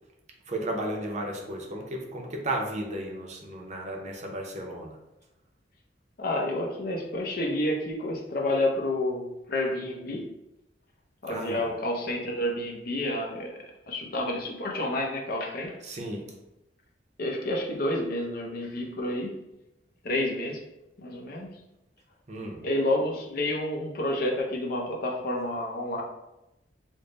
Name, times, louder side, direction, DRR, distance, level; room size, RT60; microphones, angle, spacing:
voice 1, 0.5-5.0 11.3-11.7 15.8-16.3 22.3-22.6, right 1 dB, 40° right, 0 dB, 0.6 m, -34 dB
voice 2, 6.2-10.2 11.2-13.6 13.9-15.8 17.2-19.3 20.0-20.6 21.0-21.5 22.6-26.0, left 1 dB, 55° left, 0 dB, 0.6 m, -29 dB
3.4 x 2.1 x 3.9 m, 0.93 s
head